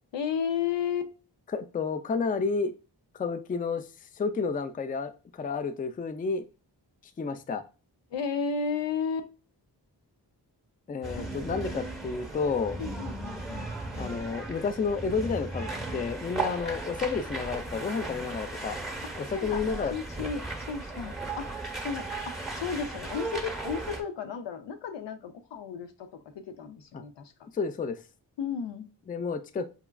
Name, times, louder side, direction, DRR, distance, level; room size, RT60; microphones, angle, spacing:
voice 1, 0.1-1.1 8.1-9.3 11.2-11.3 12.8-13.7 19.3-19.6 19.9-21.5 21.8-27.3 28.4-28.9, left 6 dB, 80° left, 0.6 m, -33 dB
voice 2, 1.5-2.7 3.1-3.9 4.1-6.4 7.2-7.6 10.9-12.8 14.0-18.8 19.1-19.9 20.2-20.3 26.9-27.0 27.5-28.0 29.1-29.7, left 5 dB, 20° left, 0.3 m, -31 dB
sound 1, 11.0-24.0, right 2 dB, ahead, 0.9 m, -36 dB
4.9 x 2.3 x 2.2 m
cardioid pair, 45°, 43 cm